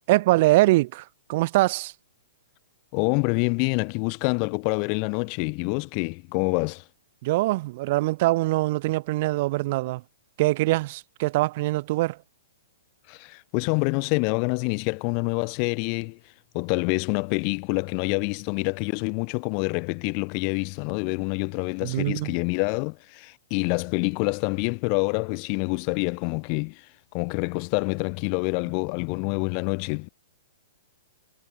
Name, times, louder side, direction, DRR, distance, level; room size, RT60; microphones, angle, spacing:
voice 1, 0.1-1.9 7.2-10.0 10.4-12.2 21.8-22.3, right 19 dB, 40° right, 5.5 m, -23 dB
voice 2, 2.9-6.8 13.1-16.2 16.5-26.9 27.1-30.1, left 40 dB or more, 35° left, 5.9 m, -26 dB
hypercardioid pair, 155°, 0 cm